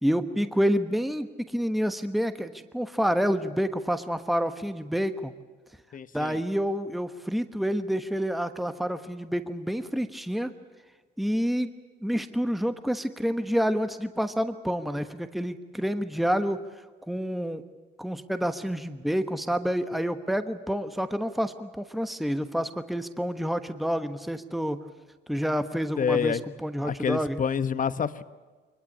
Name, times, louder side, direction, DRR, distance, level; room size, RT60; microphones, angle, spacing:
voice 1, 0.0-5.3 6.1-10.5 11.2-11.7 12.0-16.6 17.1-17.6 18.0-24.8 25.3-27.4, equal, ahead, 9 dB, 1.2 m, -28 dB
voice 2, 5.9-6.4 26.0-26.4 26.8-28.2, left 7 dB, 40° left, 13 dB, 1.1 m, -28 dB
23.0 x 21.0 x 8.6 m, 1.4 s
cardioid pair, 90°, 20 cm